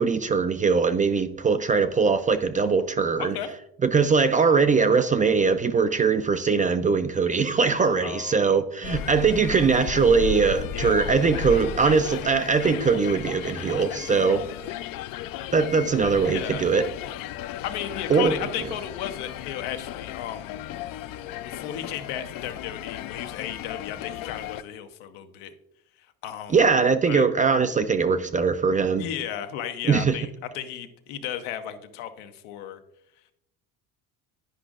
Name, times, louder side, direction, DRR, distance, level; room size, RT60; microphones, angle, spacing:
voice 1, 0.0-3.4 3.8-14.5 15.5-16.8 18.1-18.3 26.5-29.0 29.9-30.2, right 5 dB, 20° right, 0.3 m, -21 dB
voice 2, 3.2-3.5 8.0-8.5 10.7-11.0 14.4-14.6 16.3-16.6 17.6-20.7 21.4-25.5 26.2-26.6 27.1-27.2 28.9-32.8, left 10 dB, 80° left, 0.9 m, -34 dB
sound 1, 8.8-24.6, left 10 dB, 55° left, 0.5 m, -35 dB
10.0 x 5.1 x 2.4 m
supercardioid pair, 80°, 42 cm